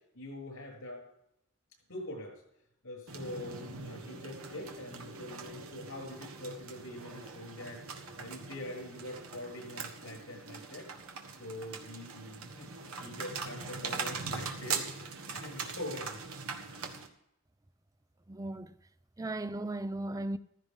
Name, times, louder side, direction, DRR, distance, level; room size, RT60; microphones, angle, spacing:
voice 1, 0.1-1.1 1.9-2.4 2.8-10.9 11.2-16.3 16.7-17.0 19.2-19.3, left 1 dB, 75° left, 6.9 m, -44 dB
sound 1, 3.1-17.1, right 5 dB, 80° right, 1.5 m, -42 dB
voice 2, 18.3-18.7 19.2-20.4, right 2 dB, 15° right, 0.5 m, -36 dB
15.0 x 14.0 x 3.7 m
head